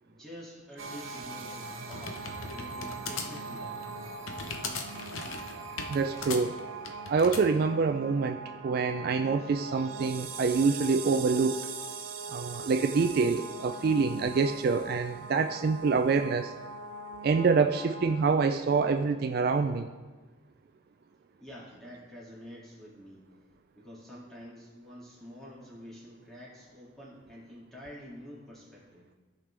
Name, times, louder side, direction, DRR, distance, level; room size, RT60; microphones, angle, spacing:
voice 1, 0.0-4.1 21.4-23.3 23.8-29.1, equal, ahead, -7 dB, 2.2 m, -48 dB
sound 1, 0.8-18.2, right 4 dB, 80° right, 0.8 m, -41 dB
sound 2, 1.3-7.5, left 4 dB, 80° left, 0.8 m, -39 dB
voice 2, 5.9-6.5 7.1-11.6 12.3-16.5 17.2-19.9, right 4 dB, 50° right, 7 dB, 0.3 m, -26 dB
15.0 x 5.2 x 3.3 m, 1.2 s
head